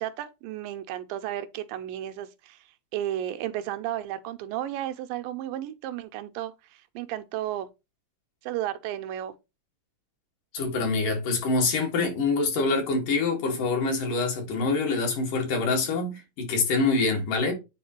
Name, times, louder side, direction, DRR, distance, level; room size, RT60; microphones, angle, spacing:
voice 1, 0.0-2.6 2.9-7.7 8.4-9.3, right 12 dB, 85° right, 2.3 m, -33 dB
voice 2, 10.5-17.5, left 3 dB, 70° left, 3.4 m, -25 dB
9.3 x 3.6 x 3.0 m
omnidirectional pair, 4.0 m